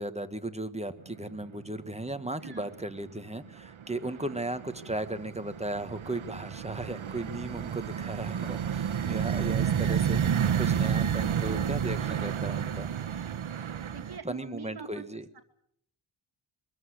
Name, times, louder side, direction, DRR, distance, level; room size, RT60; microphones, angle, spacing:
voice 1, 0.0-10.2 10.6-12.9 14.2-15.2, right 1 dB, 15° right, 10 dB, 1.5 m, -36 dB
sound 1, 1.1-1.7 1.9-2.7 3.1-14.2, right 8 dB, 80° right, 1.1 m, -30 dB
voice 2, 13.9-15.0 15.3-15.4, right 5 dB, 50° right, 3 dB, 2.4 m, -43 dB
23.5 x 14.0 x 9.9 m, 0.72 s
wide cardioid pair, 110°, 48 cm